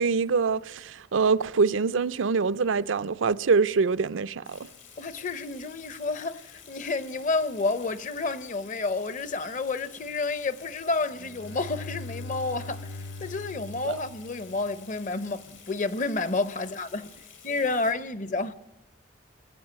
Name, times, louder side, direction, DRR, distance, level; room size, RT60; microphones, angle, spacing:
voice 1, 0.0-4.6 13.8-13.9, right 5 dB, 85° right, 0.5 m, -24 dB
Water tap faucet / Sink (filling or washing), 4.4-17.9, left 7 dB, 75° left, 2.9 m, -51 dB
voice 2, 5.0-12.9 13.2-18.5, left 3 dB, 40° left, 0.7 m, -30 dB
Bowed string instrument, 11.0-15.0, left 2 dB, 60° left, 2.3 m, -41 dB
21.5 x 8.7 x 7.6 m
head